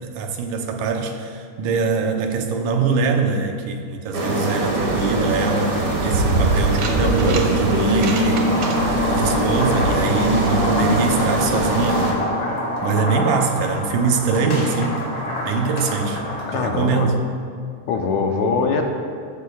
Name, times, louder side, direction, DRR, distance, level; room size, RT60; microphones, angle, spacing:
voice 1, 0.0-8.5 9.1-12.2 12.8-15.0 15.5-16.2 16.5-17.2, right 4 dB, 85° right, 4 dB, 2.3 m, -23 dB
sound 1, 4.1-12.1, right 1 dB, 45° right, 1.1 m, -21 dB
sound 2, 6.6-7.5 7.8-8.8, right 5 dB, 65° right, 2.0 m, -31 dB
voice 2, 7.7-8.2 16.5-17.1 17.9-18.8, left 5 dB, 75° left, 3 dB, 2.0 m, -22 dB
sound 3, 8.3-16.6, left 1 dB, 55° left, 3.0 m, -27 dB
13.5 x 13.0 x 2.3 m, 2.2 s
omnidirectional pair, 3.5 m